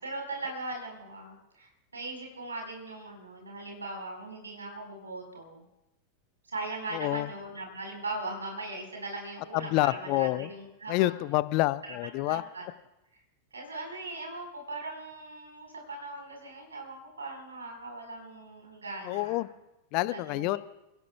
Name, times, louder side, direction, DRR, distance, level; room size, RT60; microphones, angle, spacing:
voice 1, 0.0-5.7 6.4-11.1 12.2-12.7 13.1-13.2 13.5-19.5 20.1-20.6, right 2 dB, 75° right, 2 dB, 4.5 m, -39 dB
voice 2, 6.9-7.3 9.5-10.5 10.9-12.4 19.0-19.5 19.9-20.6, left 18 dB, 45° left, 17 dB, 0.6 m, -28 dB
29.0 x 17.0 x 2.3 m, 0.94 s
figure-of-eight pair, 90°, 0 cm